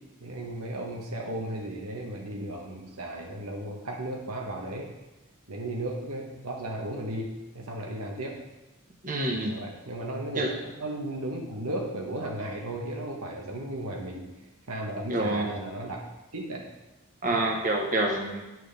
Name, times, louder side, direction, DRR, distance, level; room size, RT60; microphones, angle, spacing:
voice 1, 0.2-4.9 5.5-8.4 9.4-14.3 14.7-16.0 16.3-16.6, right 1 dB, 80° right, 0 dB, 1.3 m, -35 dB
voice 2, 9.0-9.5 10.4-10.5 15.1-15.5 17.2-18.4, right 2 dB, 35° right, 1 dB, 1.3 m, -27 dB
9.4 x 6.2 x 3.5 m, 1.1 s
head